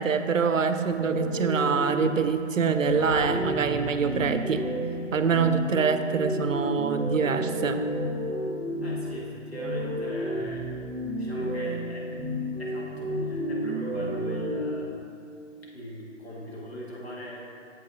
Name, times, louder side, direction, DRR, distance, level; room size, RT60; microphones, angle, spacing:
voice 1, 0.0-4.6 5.1-7.9, right 6 dB, 80° right, 9 dB, 0.6 m, -25 dB
sound 1, 0.9-14.7, equal, 15° right, 1.7 m, -31 dB
sound 2, 2.8-7.4 8.2-8.3, equal, 5° left, 0.6 m, -45 dB
voice 2, 8.8-10.7 11.1-12.1 12.6-14.9 15.7-17.4, equal, 50° left, -4 dB, 1.7 m, -40 dB
7.5 x 5.2 x 3.9 m, 2.6 s
figure-of-eight pair, 150°, 39 cm